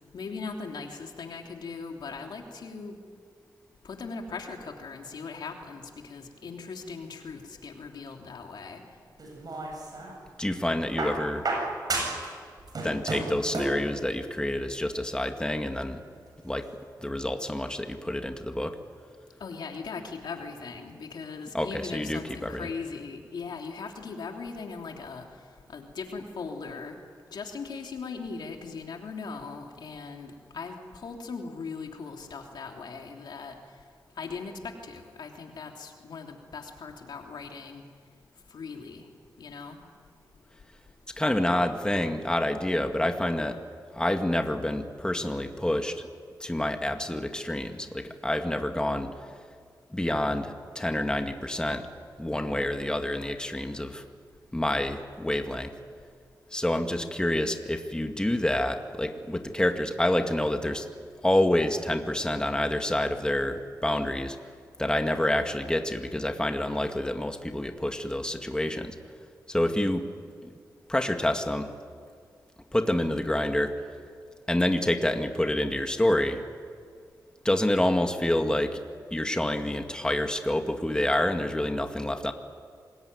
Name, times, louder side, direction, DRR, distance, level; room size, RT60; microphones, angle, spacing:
voice 1, 0.1-3.0 3.8-8.8 19.4-25.2 25.7-27.0 27.3-33.5 34.2-37.8 38.5-39.0 39.4-39.8, left 4 dB, 85° left, 2 dB, 3.1 m, -39 dB
sound 1, 9.2-10.2 11.0-12.3 12.6-13.8 14.9-15.0, right 2 dB, 60° right, 7.6 m, -31 dB
voice 2, 10.4-11.4 12.8-16.0 16.4-16.7 17.0-18.7 21.5-22.7 41.2-43.6 43.9-46.1 46.4-49.1 49.9-51.9 52.2-54.0 54.5-55.7 56.5-60.9 61.2-64.4 64.8-69.0 69.5-70.1 70.4-70.5 70.9-71.7 72.7-73.7 74.5-76.4 77.4-78.8 79.1-82.3, left 1 dB, 10° left, 5 dB, 2.1 m, -27 dB
26.5 x 21.0 x 9.7 m, 2.1 s
cardioid pair, 70°, 7 cm